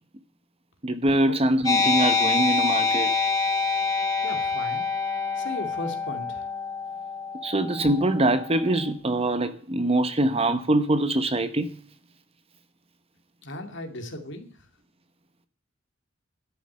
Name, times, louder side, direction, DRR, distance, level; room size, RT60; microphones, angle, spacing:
voice 1, 0.8-3.1 7.4-11.7, right 1 dB, 30° right, 1.0 m, -23 dB
sound 1, 1.7-8.7, left 4 dB, 20° left, 3.1 m, -26 dB
voice 2, 4.2-4.8 5.4-6.5 13.4-14.5, left 1 dB, 60° left, 2.5 m, -36 dB
12.0 x 7.0 x 8.7 m
head